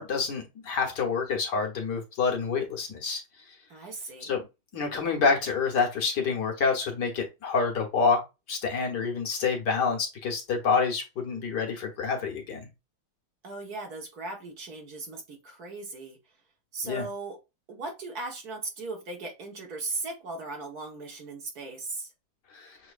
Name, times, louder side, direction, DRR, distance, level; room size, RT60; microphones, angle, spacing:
voice 1, 0.0-3.2 4.2-4.4 4.7-8.2 8.5-12.7 16.8-17.1 22.5-22.8, left 5 dB, 60° left, 1.8 m, -27 dB
voice 2, 3.7-4.3 13.4-16.2 16.7-17.4 17.7-22.1, right 3 dB, 55° right, 1.8 m, -37 dB
6.9 x 3.0 x 2.4 m
omnidirectional pair, 2.1 m